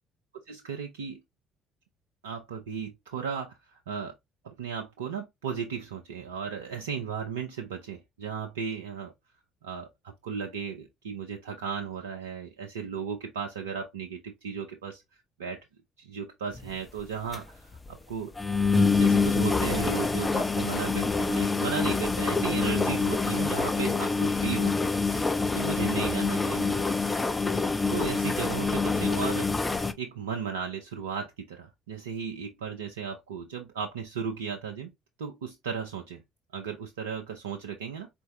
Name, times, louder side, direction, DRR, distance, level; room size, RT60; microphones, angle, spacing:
voice 1, 0.5-1.2 2.2-4.1 4.4-9.1 9.6-15.0 15.4-15.6 16.0-18.3 18.7-24.7 25.5-26.9 27.6-29.7 30.0-34.9 35.2-36.2 36.5-38.1, right 6 dB, 85° right, 0.6 m, -35 dB
sound 1, 16.5-16.7 17.0-17.1 17.3-17.4 17.7-17.9 18.4-29.9, left 4 dB, 20° left, 0.7 m, -26 dB
4.3 x 3.5 x 2.9 m
hypercardioid pair, 55°, 0 cm